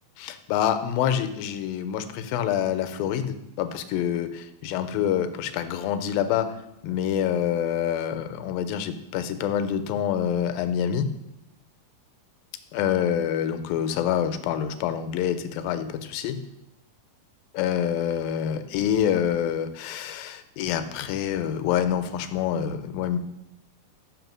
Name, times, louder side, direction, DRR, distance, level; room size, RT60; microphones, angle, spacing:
voice 1, 0.2-6.5 6.8-11.1 12.7-16.4 17.5-23.2, left 9 dB, 85° left, 10 dB, 2.3 m, -26 dB
5.7 x 5.5 x 6.0 m, 0.87 s
omnidirectional pair, 4.1 m